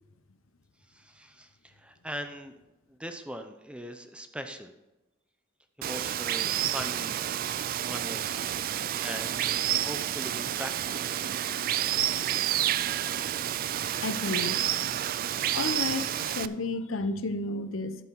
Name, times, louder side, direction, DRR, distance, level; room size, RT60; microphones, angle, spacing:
voice 1, 0.9-2.5 3.0-4.7 5.8-7.3 7.8-8.4 9.0-11.1, equal, 5° right, 7 dB, 0.7 m, -40 dB
Water, 5.8-16.5, right 11 dB, 45° right, 0.3 m, -29 dB
voice 2, 14.0-14.6 15.5-18.0, left 2 dB, 80° left, 11 dB, 0.7 m, -32 dB
12.5 x 7.5 x 4.6 m, 1.0 s
head